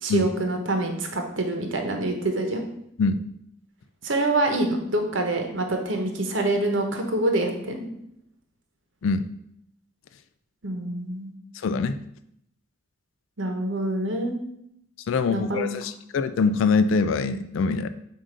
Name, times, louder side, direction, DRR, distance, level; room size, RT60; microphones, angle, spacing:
voice 1, 0.0-2.6 4.0-7.9 10.6-11.3 13.4-14.3 15.3-15.7, right 2 dB, 70° right, 4 dB, 1.0 m, -26 dB
voice 2, 11.6-12.0 15.1-17.9, left 4 dB, 80° left, 11 dB, 0.3 m, -23 dB
7.4 x 2.6 x 5.1 m, 0.74 s
head